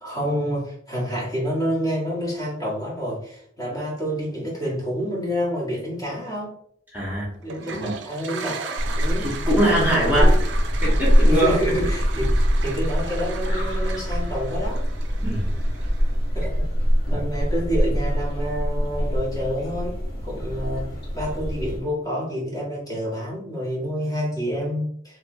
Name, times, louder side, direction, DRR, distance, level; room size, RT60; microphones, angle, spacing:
voice 1, 0.0-6.5 7.4-9.3 9.9-10.4 11.3-14.8 16.3-16.6 17.1-20.0 20.3-20.9 21.1-25.2, equal, 20° left, -6 dB, 1.4 m, -28 dB
voice 2, 6.9-7.3 7.7-7.9 9.2-10.5 10.8-11.6 15.2-15.5 17.1-17.2, equal, 10° right, -6 dB, 1.0 m, -22 dB
Toilet flush, 7.4-16.3, right 5 dB, 75° right, 0.4 m, -37 dB
sound 1, 8.8-21.8, equal, 60° left, 1.4 m, -23 dB
3.4 x 3.1 x 2.6 m, 0.66 s
head